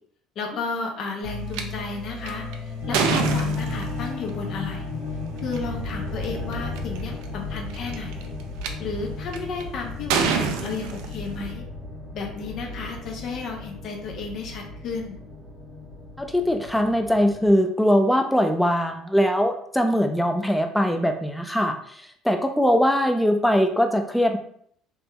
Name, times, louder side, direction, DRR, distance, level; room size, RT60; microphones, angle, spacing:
voice 1, 0.4-2.5 2.9-4.8 5.4-8.3 8.8-11.7 12.1-15.2, left 4 dB, 60° left, 1 dB, 0.7 m, -33 dB
sound 1, 1.2-17.6, left 3 dB, 85° left, 1.4 m, -34 dB
sound 2, 1.5-1.6 2.3-4.1 5.4-5.6 6.2-6.3 6.5-7.0 7.7-8.7 9.3-9.6 10.1-11.5, right 6 dB, 75° right, 0.3 m, -26 dB
voice 2, 16.2-24.4, equal, 5° left, 5 dB, 0.5 m, -21 dB
3.3 x 2.9 x 2.2 m, 0.63 s
hypercardioid pair, 65°, 0 cm